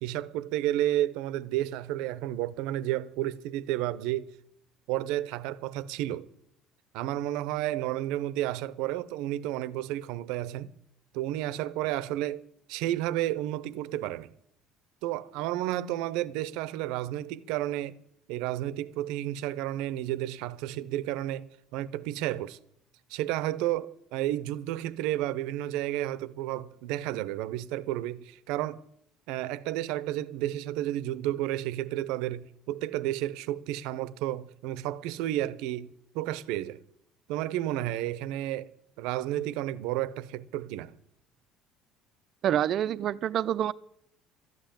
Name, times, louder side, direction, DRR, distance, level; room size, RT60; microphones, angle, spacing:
voice 1, 0.0-4.3 4.9-6.3 6.9-10.7 11.1-12.4 12.7-14.3 15.0-18.0 18.3-22.6 23.1-28.8 29.3-36.8 37.3-38.7 39.0-40.9, right 14 dB, 85° right, 0.7 m, -31 dB
voice 2, 42.4-43.7, right 10 dB, 45° right, 0.5 m, -27 dB
12.5 x 9.5 x 9.0 m
cardioid pair, 150°, 0 cm